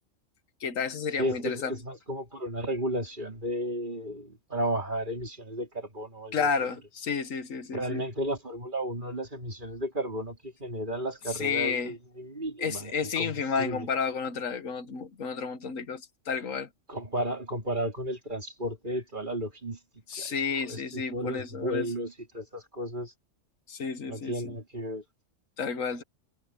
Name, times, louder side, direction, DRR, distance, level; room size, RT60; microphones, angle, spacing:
voice 1, 0.6-1.8 6.3-8.0 11.3-11.9 12.6-16.7 20.1-21.9 23.7-24.6 25.6-26.0, left 5 dB, 85° left, 1.7 m, -31 dB
voice 2, 1.2-6.5 7.7-13.9 16.9-19.8 20.2-23.1 24.1-25.0, equal, 40° right, 3.9 m, -33 dB
omnidirectional pair, 1.3 m